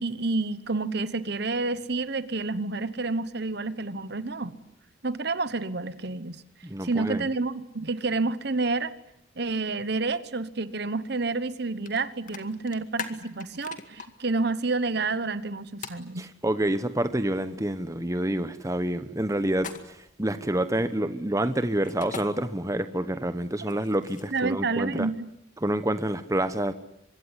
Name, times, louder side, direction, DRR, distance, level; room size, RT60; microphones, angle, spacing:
voice 1, 0.0-4.6 5.0-6.4 6.8-8.9 9.4-16.3 23.7-23.8 24.3-25.3, right 3 dB, 55° right, 15 dB, 1.1 m, -29 dB
voice 2, 6.6-7.3 16.2-25.1 25.6-26.7, right 1 dB, 15° right, 11 dB, 1.0 m, -28 dB
sound 1, 11.8-12.0 12.3-14.1 15.8-16.0 19.5-20.1 21.8-22.2 23.6-24.5, left 5 dB, 40° left, 2.1 m, -39 dB
25.0 x 22.5 x 9.8 m, 0.79 s
head